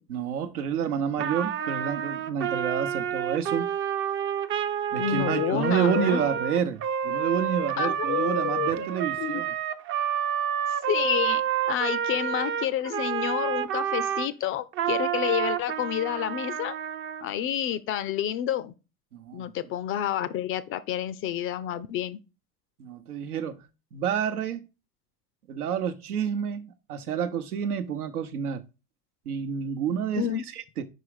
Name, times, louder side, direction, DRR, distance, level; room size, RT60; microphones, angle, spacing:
voice 1, 0.1-3.7 4.9-9.5 19.1-19.5 22.8-23.6 23.9-24.6 25.5-28.6 29.3-30.8, right 7 dB, 85° right, 0.9 m, -29 dB
Trumpet, 1.2-14.3 14.7-17.3, right 9 dB, 30° right, 0.5 m, -29 dB
voice 2, 4.9-6.2 7.8-8.9 9.2-9.4 10.9-11.4 11.7-16.8 17.2-18.7 19.3-22.2 30.2-30.4, left 11 dB, 30° left, 0.4 m, -29 dB
5.1 x 4.7 x 4.8 m
hypercardioid pair, 95°, 43 cm